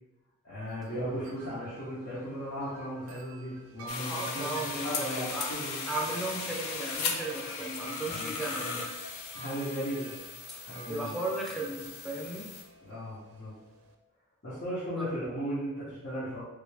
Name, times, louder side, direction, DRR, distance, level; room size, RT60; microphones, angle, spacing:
voice 1, 0.4-5.8 8.1-8.3 9.3-10.1 10.7-11.1 12.8-13.5 14.4-16.4, equal, 60° left, -11 dB, 1.0 m, -36 dB
Wind chime, 0.6-14.0, right 4 dB, 70° right, 0.4 m, -50 dB
sound 1, 3.9-12.6, left 5 dB, 75° left, 0.5 m, -37 dB
voice 2, 4.1-5.5 5.9-8.9 10.5-10.6 10.9-12.5 15.0-15.1, right 2 dB, ahead, -3 dB, 0.6 m, -36 dB
3.3 x 2.5 x 3.3 m, 1.0 s
head